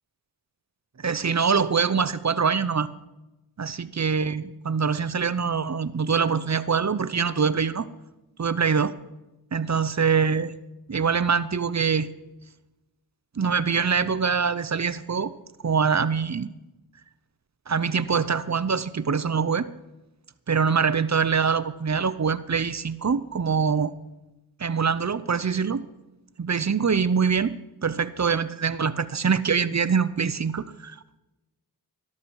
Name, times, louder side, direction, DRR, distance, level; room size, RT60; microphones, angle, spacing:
voice 1, 1.0-2.9 3.6-7.9 8.4-8.9 9.5-10.5 10.9-12.1 13.4-15.3 15.6-16.5 17.7-19.7 20.5-23.9 24.6-25.8 26.4-31.2, right 6 dB, 45° right, 16 dB, 0.7 m, -24 dB
13.0 x 13.0 x 4.8 m, 0.99 s
wide cardioid pair, 45°, 37 cm